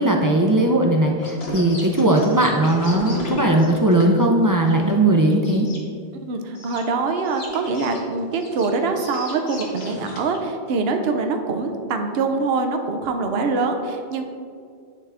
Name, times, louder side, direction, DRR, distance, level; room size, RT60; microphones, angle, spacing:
voice 1, 0.0-5.7, right 1 dB, 35° right, 1 dB, 0.3 m, -18 dB
sound 1, 1.2-5.8 6.6-6.8 7.2-10.4, left 1 dB, 75° left, 1.4 m, -36 dB
voice 2, 6.2-14.2, right 4 dB, 75° right, 5 dB, 0.8 m, -24 dB
9.9 x 3.6 x 3.4 m, 2.3 s
omnidirectional pair, 1.1 m